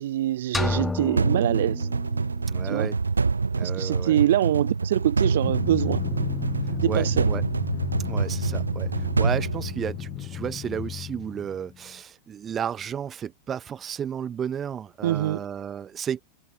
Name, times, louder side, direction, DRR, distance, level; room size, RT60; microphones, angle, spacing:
voice 1, 0.0-1.9 2.6-2.9 3.6-6.0 6.7-7.3 15.0-15.4, right 13 dB, 60° right, 0.7 m, -24 dB
sound 1, 0.5-2.5, left 3 dB, 10° left, 2.8 m, -30 dB
sound 2, 1.2-10.4, right 4 dB, 75° right, 1.2 m, -26 dB
voice 2, 2.5-3.0 3.5-4.2 6.9-7.4 8.0-16.2, right 8 dB, 25° right, 1.6 m, -33 dB
Drum, 5.4-11.9, left 12 dB, 30° left, 3.6 m, -34 dB
figure-of-eight pair, 90°, 0 cm